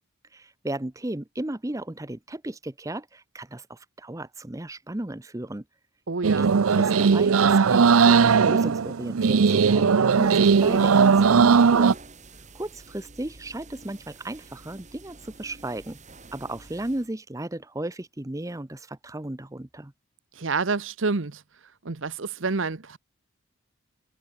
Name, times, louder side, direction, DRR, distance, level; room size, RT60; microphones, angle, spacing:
voice 1, 0.3-5.6 6.4-6.5 6.7-12.0 12.5-16.0 16.3-19.9, right 1 dB, 15° right, 0.7 m, -35 dB
voice 2, 6.1-6.5 20.3-21.4 21.8-23.0, right 4 dB, 65° right, 0.9 m, -28 dB
sound 1, 6.2-11.9, right 5 dB, 85° right, 0.6 m, -18 dB
sound 2, 10.1-17.1, right 3 dB, 35° right, 4.8 m, -49 dB
head